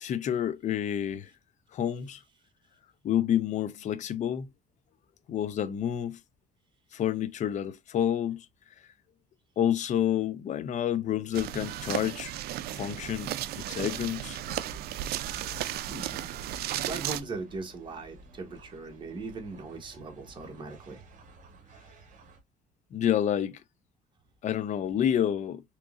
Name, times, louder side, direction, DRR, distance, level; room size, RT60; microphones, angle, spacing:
voice 1, 0.0-1.3 1.7-2.2 3.0-4.5 5.3-6.2 6.9-8.5 9.6-12.3 12.8-14.4 22.9-23.6 24.4-25.6, left 10 dB, 45° left, 0.5 m, -29 dB
sound 1, 11.3-17.2, right 13 dB, 70° right, 0.4 m, -35 dB
sound 2, 13.7-22.4, right 1 dB, 50° right, 1.1 m, -51 dB
voice 2, 15.9-16.3 16.7-21.0, right 3 dB, 30° right, 1.3 m, -39 dB
3.6 x 3.0 x 2.5 m
cardioid pair, 110°, 17 cm